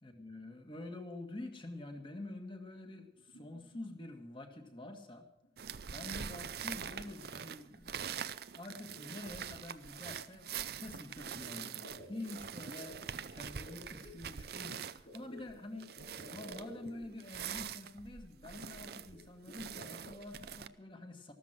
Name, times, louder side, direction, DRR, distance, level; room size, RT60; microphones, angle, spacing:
voice 1, 0.0-5.3 5.9-8.2 8.5-21.3, left 2 dB, 25° left, 5 dB, 1.8 m, -47 dB
sound 1, 3.1-4.2 4.6-5.0 5.4-5.9 6.2-7.8 8.3-8.4 8.7-10.0 11.1-14.2 15.0-17.5 17.8-17.9 18.1-18.2 18.8-20.2, left 1 dB, 80° left, 6.2 m, -55 dB
sound 2, 5.6-20.7, right 8 dB, 55° right, 0.6 m, -44 dB
14.0 x 13.5 x 6.0 m, 0.83 s
head